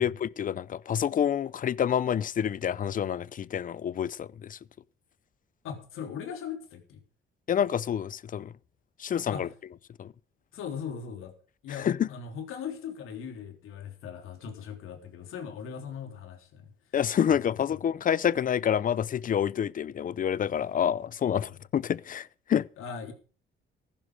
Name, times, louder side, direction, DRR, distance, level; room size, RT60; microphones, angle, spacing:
voice 1, 0.0-4.6 7.5-8.5 9.0-9.5 10.0-10.1 11.8-12.1 16.9-22.7, left 9 dB, 40° left, 0.5 m, -28 dB
voice 2, 5.6-7.0 9.3-9.5 10.5-11.3 11.6-16.7 17.5-17.8 21.5-21.6 22.8-23.1, left 7 dB, 85° left, 3.5 m, -39 dB
15.0 x 11.5 x 5.1 m
cardioid pair, 120°, 21 cm